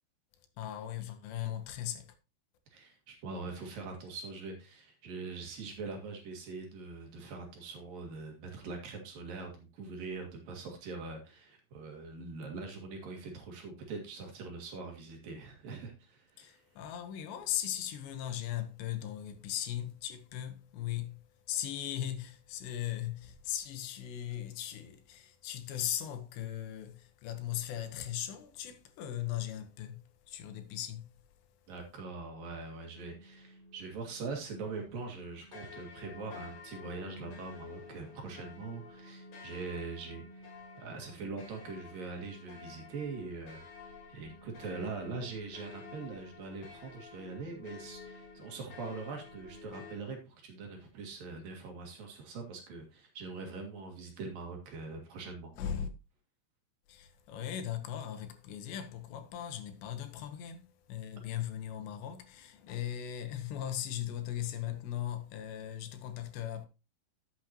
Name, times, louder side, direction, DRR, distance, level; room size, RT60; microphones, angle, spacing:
voice 1, 0.6-2.1 16.4-31.1 55.5-55.9 56.9-66.7, left 11 dB, 80° left, 3.2 m, -38 dB
voice 2, 2.7-16.6 31.7-40.2 40.8-43.6 44.1-55.5, right 4 dB, 60° right, 3.3 m, -42 dB
sound 1, 32.9-50.0, left 4 dB, 55° left, 3.7 m, -51 dB
12.0 x 7.4 x 2.9 m
omnidirectional pair, 5.1 m